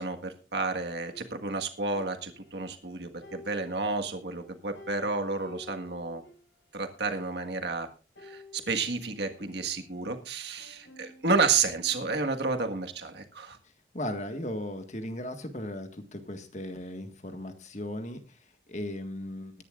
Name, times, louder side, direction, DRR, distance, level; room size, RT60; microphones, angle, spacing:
voice 1, 0.0-6.2 6.7-7.9 8.2-13.6, right 4 dB, 65° right, 5 dB, 1.6 m, -31 dB
sound 1, 1.1-2.9 3.2-6.5 6.8-6.9 7.0-7.6 8.1-10.1 10.6-12.2, left 2 dB, 80° left, 6.0 m, -52 dB
voice 2, 13.9-19.5, left 1 dB, 40° left, 7 dB, 1.7 m, -37 dB
20.5 x 11.0 x 2.5 m, 0.34 s
head